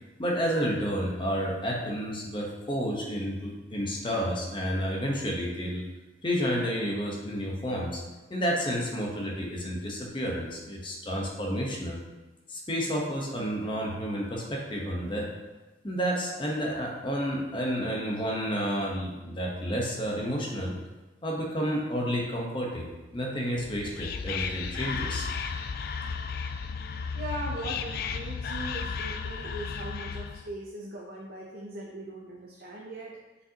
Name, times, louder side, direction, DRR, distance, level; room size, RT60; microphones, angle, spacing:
voice 1, 0.2-5.8 6.2-8.0 8.3-12.0 12.5-15.3 15.8-20.8 21.2-25.3, equal, 25° left, -2 dB, 1.0 m, -30 dB
Whispering, 23.6-30.5, left 5 dB, 50° left, 0.3 m, -34 dB
voice 2, 27.1-33.1, right 1 dB, 50° right, -3 dB, 0.7 m, -39 dB
6.5 x 5.3 x 2.9 m, 1.1 s
head